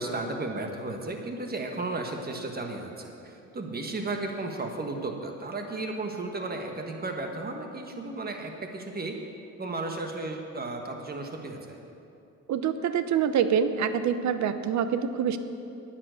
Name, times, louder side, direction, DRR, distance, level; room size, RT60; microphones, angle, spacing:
voice 1, 0.0-9.2 9.6-11.8, right 2 dB, 30° right, 3 dB, 1.5 m, -34 dB
voice 2, 12.5-15.4, right 8 dB, 70° right, 11 dB, 0.7 m, -26 dB
9.7 x 9.2 x 6.4 m, 2.7 s
cardioid pair, 90°, 30 cm